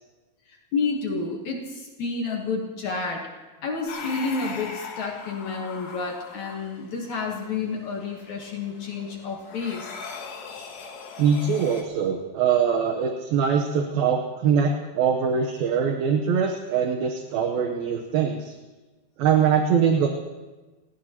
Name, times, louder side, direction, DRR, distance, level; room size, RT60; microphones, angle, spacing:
voice 1, 0.5-3.3 3.6-10.0, left 4 dB, 60° left, 0 dB, 2.3 m, -30 dB
sound 1, 3.9-11.8, left 5 dB, 85° left, 3.8 m, -40 dB
voice 2, 11.2-18.5 19.2-20.1, right 7 dB, 75° right, 3 dB, 2.6 m, -23 dB
29.5 x 15.5 x 2.9 m, 1.2 s
omnidirectional pair, 4.6 m